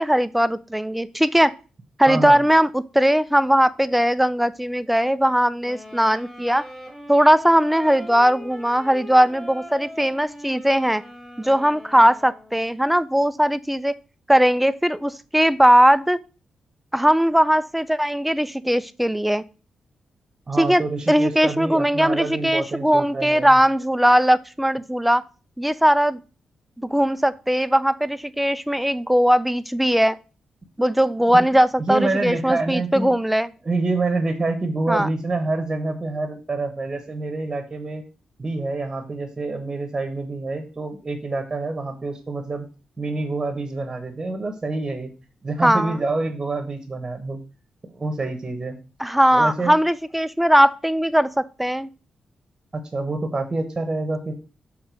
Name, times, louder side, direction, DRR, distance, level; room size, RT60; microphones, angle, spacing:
voice 1, 0.0-1.5 2.0-6.6 7.1-11.0 11.4-13.9 14.3-16.2 16.9-19.4 20.6-20.8 21.1-25.2 25.6-26.2 26.8-30.2 30.8-33.5 34.9-35.1 45.6-46.0 49.0-51.9, equal, 5° right, 14 dB, 0.3 m, -19 dB
voice 2, 2.1-2.4 20.5-23.6 31.2-31.5 31.9-33.2 33.6-38.0 38.4-42.7 43.0-45.1 45.4-47.4 47.8-48.8 49.3-49.7 52.7-54.3, right 3 dB, 25° right, 6 dB, 0.9 m, -27 dB
sound 1, 5.6-12.7, left 1 dB, 10° left, 1.6 m, -41 dB
6.6 x 3.7 x 6.0 m, 0.35 s
wide cardioid pair, 140°, 2 cm